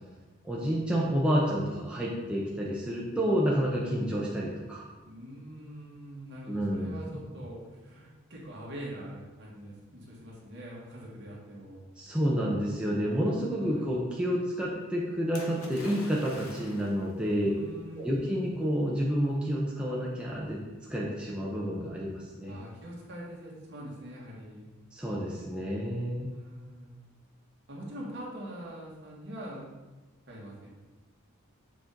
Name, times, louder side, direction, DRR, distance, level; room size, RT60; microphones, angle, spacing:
voice 1, 0.4-4.8 6.4-7.1 7.3-7.4 12.0-17.6 18.0-20.6 20.9-22.5 24.9-26.3, equal, 5° right, -5 dB, 0.7 m, -29 dB
voice 2, 5.0-11.8 13.6-13.9 17.4-18.6 22.5-24.7 26.3-26.9 27.7-29.7 30.3-30.7, equal, 55° right, -4 dB, 1.7 m, -44 dB
Splash splatter, 15.3-17.1 18.1-18.2, left 2 dB, 75° left, 1.0 m, -46 dB
7.4 x 4.3 x 3.8 m, 1.2 s
head